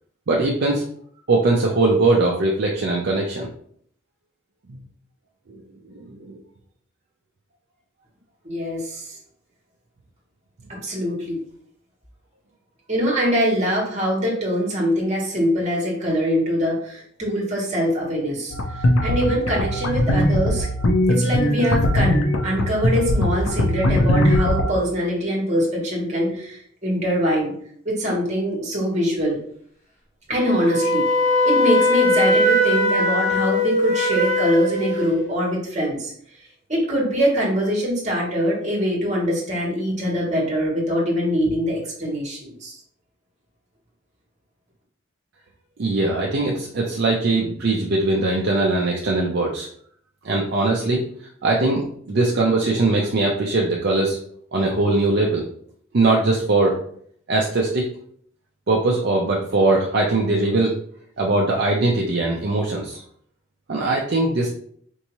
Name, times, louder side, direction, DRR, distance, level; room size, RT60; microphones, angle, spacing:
voice 1, 0.3-0.8 1.3-3.5 4.7-4.8 5.5-5.6 5.9-6.4 45.8-49.7 50.2-51.0 51.4-54.2 54.5-55.5 55.9-56.8 57.3-57.8 58.7-60.8 61.2-63.0 63.7-64.5, right 2 dB, 55° right, -2 dB, 0.5 m, -21 dB
voice 2, 8.4-9.2 10.7-11.4 12.9-18.5 19.0-20.7 21.1-27.5 27.8-29.4 30.3-31.0 31.4-36.1 36.7-42.7, equal, 35° right, -2 dB, 1.3 m, -23 dB
sound 1, 18.5-24.7, left 1 dB, 80° left, 0.6 m, -20 dB
Wind instrument woodwind instrument, 30.4-35.2, left 1 dB, 40° left, 1.3 m, -20 dB
4.5 x 2.7 x 3.0 m, 0.63 s
head